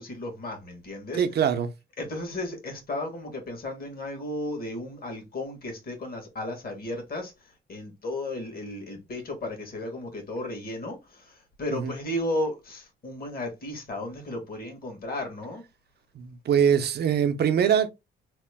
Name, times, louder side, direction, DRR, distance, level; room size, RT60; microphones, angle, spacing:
voice 1, 0.0-1.2 2.0-7.3 7.7-15.6, left 1 dB, 50° left, 1.4 m, -34 dB
voice 2, 1.2-1.7 11.7-11.9 16.1-17.9, right 8 dB, 55° right, 0.6 m, -23 dB
2.9 x 2.1 x 3.3 m
cardioid pair, 90°, 20 cm